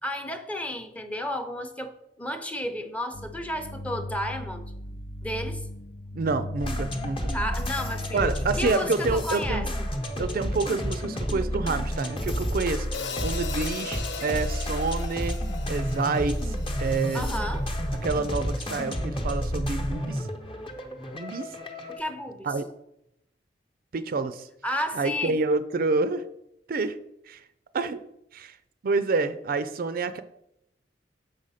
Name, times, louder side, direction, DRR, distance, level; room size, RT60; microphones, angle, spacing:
voice 1, 0.0-4.6 5.2-5.6 7.3-8.3 8.6-9.9 17.1-17.6 21.9-22.5 24.6-25.4, left 1 dB, 10° left, 7 dB, 0.7 m, -32 dB
sound 1, 3.1-8.2, left 1 dB, 55° left, 0.6 m, -37 dB
voice 2, 6.1-7.3 8.1-9.7 10.2-12.9 13.2-15.4 15.7-17.3 17.9-20.3 21.1-21.5 22.4-22.7 23.9-24.5 24.9-26.2 26.7-27.0 27.3-27.4 27.7-28.0 28.3-28.6 28.8-30.2, right 3 dB, 55° right, 13 dB, 0.4 m, -28 dB
sound 2, 6.6-22.0, equal, 30° left, 0.9 m, -30 dB
Hi-hat, 12.9-17.2, left 5 dB, 90° left, 0.7 m, -38 dB
6.8 x 5.0 x 5.6 m, 0.78 s
head